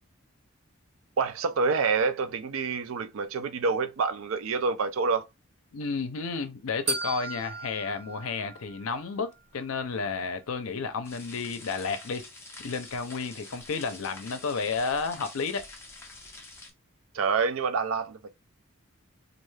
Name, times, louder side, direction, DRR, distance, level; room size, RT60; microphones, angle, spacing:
voice 1, 1.2-5.3 17.1-18.3, right 5 dB, 70° right, 0.4 m, -27 dB
voice 2, 5.7-12.2 12.6-15.6, left 4 dB, 70° left, 0.5 m, -32 dB
sound 1, 6.9-9.1, right 3 dB, 55° right, 0.8 m, -36 dB
sound 2, 11.0-16.7, left 3 dB, 10° left, 0.4 m, -46 dB
2.4 x 2.3 x 3.2 m
head